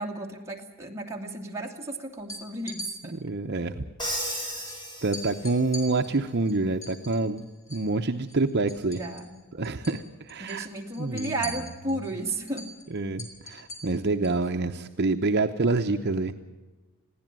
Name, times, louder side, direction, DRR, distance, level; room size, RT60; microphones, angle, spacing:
voice 1, 0.0-3.2 8.9-9.3 10.4-12.7, right 2 dB, 15° right, 0 dB, 2.5 m, -34 dB
sound 1, 2.2-2.9 4.3-4.4 4.7-4.8 5.1-7.9 8.2-9.4 9.6-10.0 10.3-14.4, left 2 dB, 60° left, 5.1 m, -42 dB
voice 2, 3.0-3.8 4.2-4.6 5.0-9.0 9.5-10.7 11.0-11.3 12.9-16.4, right 3 dB, 50° right, 5 dB, 0.8 m, -27 dB
Crash cymbal, 4.0-5.7, equal, 20° left, 7.0 m, -34 dB
21.5 x 16.0 x 7.6 m, 1.2 s
head